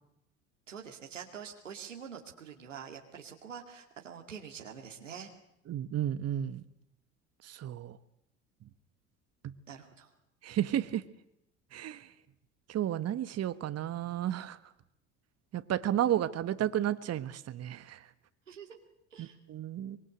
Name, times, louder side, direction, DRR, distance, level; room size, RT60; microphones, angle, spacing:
voice 1, 0.7-5.3 9.7-10.1 16.0-16.1 18.5-18.8 19.1-19.4, right 7 dB, 90° right, 2 dB, 2.5 m, -46 dB
voice 2, 5.7-6.6 7.4-8.0 9.4-9.5 10.4-11.0 11.7-12.1 12.7-14.6 15.5-18.0 19.2-20.0, right 11 dB, 45° right, 13 dB, 1.4 m, -32 dB
24.5 x 23.5 x 7.8 m, 0.82 s
hypercardioid pair, 65°, 37 cm